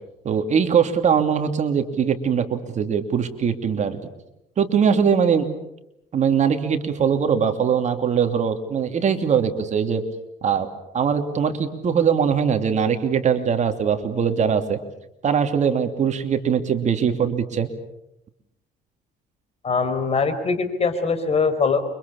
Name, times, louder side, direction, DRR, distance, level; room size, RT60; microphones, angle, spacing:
voice 1, 0.2-4.0 4.6-5.5 6.1-10.0 10.4-10.7 10.9-14.8 15.2-17.7, right 7 dB, 45° right, 6 dB, 2.8 m, -21 dB
voice 2, 19.6-21.9, left 4 dB, 35° left, 9 dB, 4.6 m, -22 dB
29.0 x 25.0 x 7.1 m, 0.82 s
cardioid pair, 110°, 17 cm